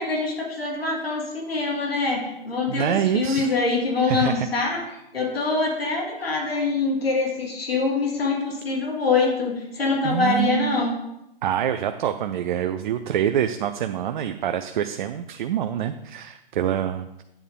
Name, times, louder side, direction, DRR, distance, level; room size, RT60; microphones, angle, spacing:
voice 1, 0.0-4.8 5.1-10.9, left 3 dB, 85° left, -1 dB, 2.7 m, -24 dB
voice 2, 2.7-3.5 4.1-4.5 10.0-10.8 11.4-17.2, right 10 dB, 55° right, 8 dB, 0.6 m, -26 dB
9.1 x 8.4 x 3.6 m, 0.88 s
hypercardioid pair, 130°, 29 cm